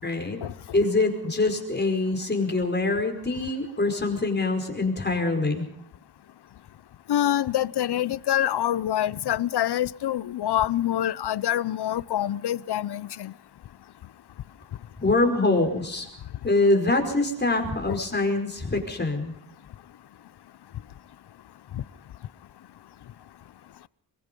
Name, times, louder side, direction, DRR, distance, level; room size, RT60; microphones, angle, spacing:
voice 1, 0.0-0.4 0.7-5.6 15.0-16.1 16.4-19.3, left 2 dB, 25° left, 5.0 m, -24 dB
voice 2, 7.1-13.3 17.9-18.0 21.7-21.8, left 11 dB, 85° left, 0.7 m, -26 dB
24.0 x 23.5 x 5.4 m
wide cardioid pair, 115°, 38 cm